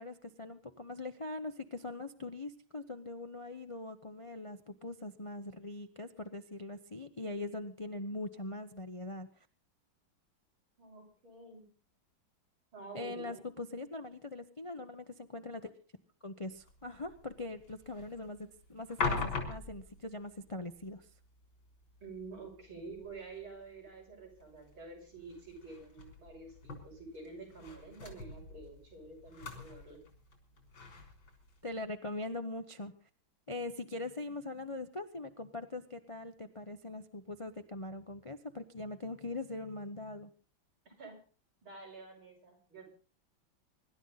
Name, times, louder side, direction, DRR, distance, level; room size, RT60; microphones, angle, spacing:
voice 1, 0.0-9.3 12.9-15.7 16.2-21.1 31.6-32.9 33.5-40.3, left 2 dB, 40° left, 8 dB, 0.4 m, -42 dB
voice 2, 10.8-11.7 12.7-13.4 22.0-30.0 40.8-41.2 41.6-42.9, right 3 dB, 90° right, 0 dB, 7.6 m, -49 dB
sound 1, 16.5-31.9, left 4 dB, 80° left, 4.6 m, -44 dB
25.5 x 12.0 x 4.1 m, 0.39 s
omnidirectional pair, 2.2 m